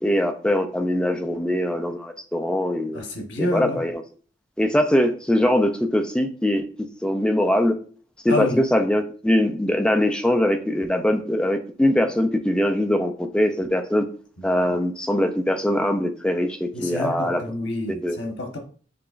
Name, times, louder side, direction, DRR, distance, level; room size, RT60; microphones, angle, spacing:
voice 1, 0.0-3.0 3.4-4.0 4.6-7.7 8.2-14.0 14.4-17.4 18.0-18.2, left 1 dB, 5° left, 0.3 m, -22 dB
voice 2, 2.9-3.8 8.3-8.6 16.7-18.6, left 1 dB, 90° left, 1.1 m, -28 dB
6.8 x 2.9 x 2.5 m
head